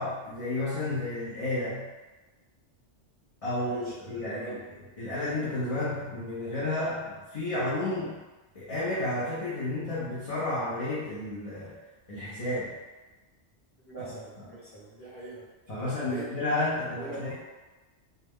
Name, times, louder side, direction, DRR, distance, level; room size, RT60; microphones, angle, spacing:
voice 1, 0.0-1.9 3.4-4.6 5.0-8.2 8.5-11.8 12.1-12.8 14.0-14.1 15.7-17.3, left 2 dB, 45° left, -9 dB, 0.5 m, -31 dB
voice 2, 3.5-4.6 13.8-15.4 15.8-16.3 16.8-17.3, right 2 dB, 15° left, -10 dB, 0.8 m, -42 dB
2.3 x 2.1 x 3.4 m, 1.2 s
omnidirectional pair, 1.2 m